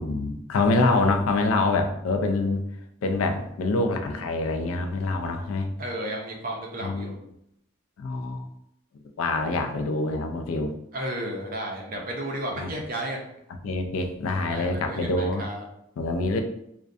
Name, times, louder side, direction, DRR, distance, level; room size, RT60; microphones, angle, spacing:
voice 1, 0.0-2.6 3.0-5.7 6.8-7.1 8.0-8.5 9.2-10.7 12.5-12.7 13.6-15.4 16.0-16.4, left 2 dB, 85° left, 5 dB, 0.3 m, -25 dB
voice 2, 5.8-7.1 9.5-9.7 10.9-13.2 14.5-15.6, right 1 dB, 40° right, 0 dB, 0.4 m, -33 dB
2.3 x 2.1 x 2.5 m, 0.78 s
head